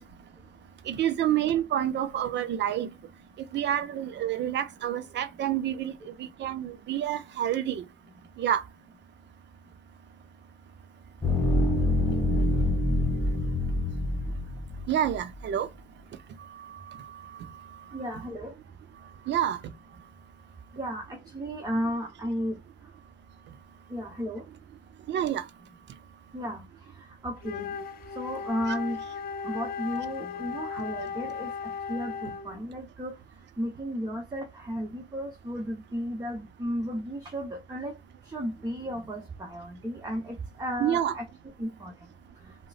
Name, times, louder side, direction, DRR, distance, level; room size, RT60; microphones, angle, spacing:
voice 1, 0.9-2.9 3.5-5.9 6.4-7.8 8.4-8.6 14.9-15.7 19.3-19.6 25.1-25.4 28.7-28.8 40.8-41.2, right 11 dB, 65° right, 0.5 m, -28 dB
sound 1, 11.2-15.1, left 2 dB, 10° left, 1.9 m, -26 dB
voice 2, 17.9-18.5 20.8-22.6 23.9-24.4 26.3-26.6 27.2-27.8 28.2-29.0 29.4-31.5 31.9-33.1 33.6-37.9 38.3-41.3 41.6-41.9, equal, 20° right, 0.9 m, -34 dB
Wind instrument woodwind instrument, 27.4-32.6, left 6 dB, 50° left, 0.4 m, -36 dB
3.8 x 2.1 x 2.4 m
cardioid pair, 90°, 20 cm